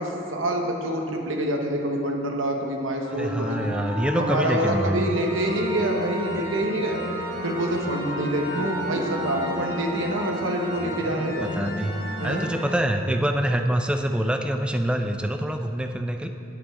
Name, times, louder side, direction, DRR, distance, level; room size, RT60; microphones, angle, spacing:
voice 1, 0.0-3.7 4.2-7.0 7.4-11.5 12.2-12.5, right 1 dB, 75° right, 2 dB, 1.1 m, -26 dB
Wind instrument woodwind instrument, 3.0-10.0, equal, 55° right, 1.4 m, -36 dB
voice 2, 3.2-5.1 11.0-11.9 12.2-16.3, right 1 dB, 5° right, 6 dB, 0.4 m, -25 dB
sound 1, 5.1-12.7, equal, 50° left, 1.6 m, -34 dB
10.5 x 9.6 x 3.7 m, 2.9 s
head